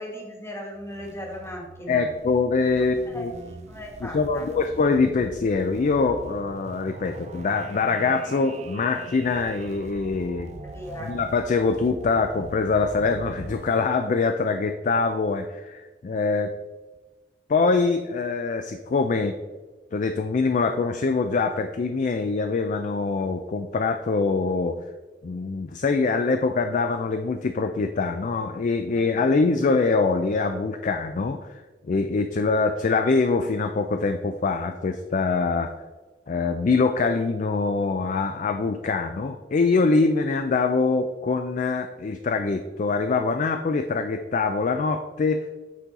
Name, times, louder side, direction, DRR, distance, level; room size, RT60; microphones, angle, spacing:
voice 1, 0.0-2.1 3.0-3.2 3.7-4.5 10.7-11.1 28.9-29.3, equal, 15° left, 0 dB, 1.4 m, -37 dB
sound 1, 0.7-13.7, right 3 dB, 40° right, 0.4 m, -42 dB
voice 2, 1.9-3.3 4.0-10.5 11.1-16.5 17.5-19.3 19.9-24.8 25.2-35.7 36.3-45.5, left 4 dB, 45° left, 7 dB, 0.4 m, -24 dB
8.3 x 3.8 x 4.1 m, 1.2 s
head